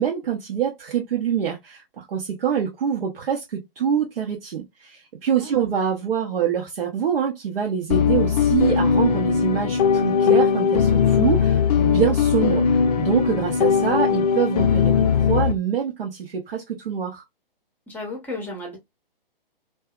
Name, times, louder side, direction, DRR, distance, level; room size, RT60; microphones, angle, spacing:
voice 1, 0.0-17.2, right 8 dB, 75° right, 0.8 m, -25 dB
sound 1, 7.9-15.5, left 7 dB, 45° left, 0.4 m, -19 dB
voice 2, 17.9-18.8, left 2 dB, 5° left, 0.7 m, -34 dB
2.6 x 2.3 x 2.3 m
hypercardioid pair, 130°, 29 cm